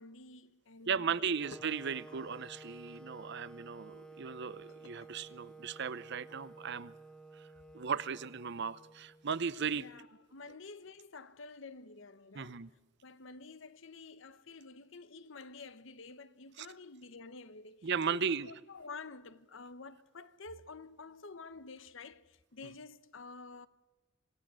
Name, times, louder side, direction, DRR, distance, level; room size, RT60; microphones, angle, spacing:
voice 1, 0.0-1.4 9.7-10.1 10.3-12.6 13.0-23.7, left 4 dB, 65° left, 1.0 m, -50 dB
voice 2, 0.9-6.9 7.3-7.5 7.7-9.9 12.3-12.7 16.6-16.7 17.8-18.5, right 6 dB, 60° right, 0.7 m, -36 dB
sound 1, 1.3-6.4, left 3 dB, 80° left, 1.5 m, -62 dB
Wind instrument woodwind instrument, 1.4-9.4, right 2 dB, 5° left, 0.7 m, -53 dB
26.5 x 18.0 x 7.6 m
head